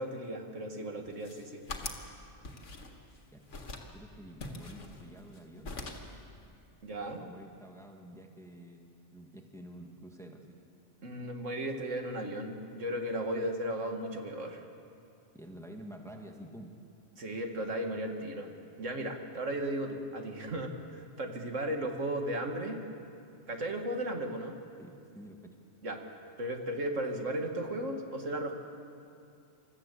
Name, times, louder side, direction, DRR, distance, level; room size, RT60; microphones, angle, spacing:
voice 1, 0.0-1.6 6.8-7.2 11.0-14.6 17.2-18.5 18.8-22.8 23.5-24.6 25.8-26.0 26.4-28.5, right 1 dB, 80° right, 4 dB, 2.2 m, -35 dB
sound 1, 1.0-2.1 2.4-3.2 3.5-3.9 4.4-5.4 5.6-6.2, left 2 dB, 75° left, 2.1 m, -42 dB
voice 2, 3.9-5.7 7.2-10.6 15.3-16.7 24.8-25.4, right 1 dB, ahead, 2 dB, 1.6 m, -49 dB
26.5 x 14.0 x 8.3 m, 2.5 s
omnidirectional pair, 1.3 m